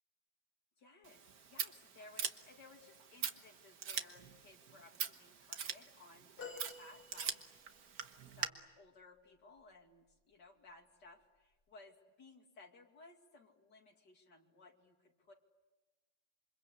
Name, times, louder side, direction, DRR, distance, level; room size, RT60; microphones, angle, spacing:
voice 1, 0.8-7.7 8.4-15.3, left 3 dB, 90° left, 3 dB, 3.2 m, -60 dB
Scissors, 1.0-8.5, right 7 dB, 65° right, 1.7 m, -44 dB
sound 1, 6.4-7.8 8.5-8.6, left 4 dB, 65° left, 5.7 m, -51 dB
27.5 x 25.0 x 8.4 m, 1.2 s
omnidirectional pair, 1.8 m